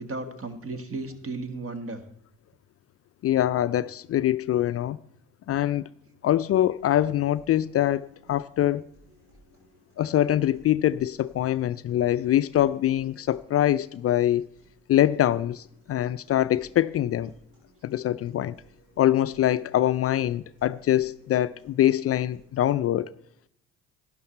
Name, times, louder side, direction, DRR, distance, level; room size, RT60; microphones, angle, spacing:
voice 1, 0.0-2.0, right 3 dB, 40° right, 1.7 m, -34 dB
voice 2, 3.2-5.0 5.5-5.9 6.2-8.8 10.0-14.5 14.9-17.3 17.8-18.6 19.0-23.1, left 12 dB, 45° left, 0.4 m, -24 dB
sound 1, 6.6-22.6, right 1 dB, 80° right, 5.8 m, -59 dB
12.0 x 10.5 x 4.4 m
hypercardioid pair, 55°, 34 cm